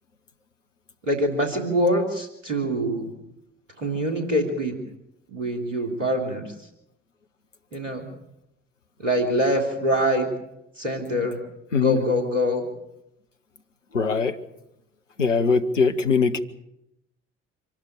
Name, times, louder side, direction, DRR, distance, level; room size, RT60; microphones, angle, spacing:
voice 1, 1.0-3.1 3.8-4.8 5.3-6.5 7.7-8.1 9.0-10.3 10.8-11.4 11.8-12.7, equal, 90° right, 5 dB, 3.1 m, -24 dB
voice 2, 11.7-12.0 13.9-14.4 15.2-16.4, left 5 dB, 85° left, 8 dB, 1.1 m, -21 dB
25.5 x 12.0 x 9.8 m, 0.83 s
figure-of-eight pair, 45°, 36 cm